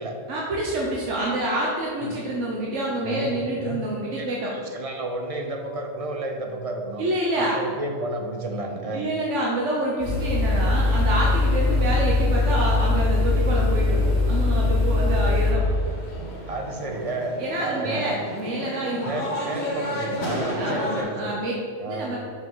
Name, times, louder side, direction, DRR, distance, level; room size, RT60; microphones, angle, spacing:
voice 1, 0.3-4.5 7.0-7.6 8.9-15.6 17.4-19.1 20.5-21.5 21.8-22.2, right 1 dB, 85° right, -3 dB, 1.3 m, -27 dB
voice 2, 3.0-3.8 4.2-7.0 7.3-9.1 11.6-11.9 16.5-18.2 19.0-21.4 21.8-22.2, right 2 dB, 35° right, 3 dB, 0.7 m, -32 dB
sound 1, 10.0-15.5, left 2 dB, 70° right, 2.5 m, -21 dB
sound 2, 15.6-21.0, left 1 dB, 65° left, 1.7 m, -32 dB
5.6 x 5.5 x 5.5 m, 2.2 s
omnidirectional pair, 1.2 m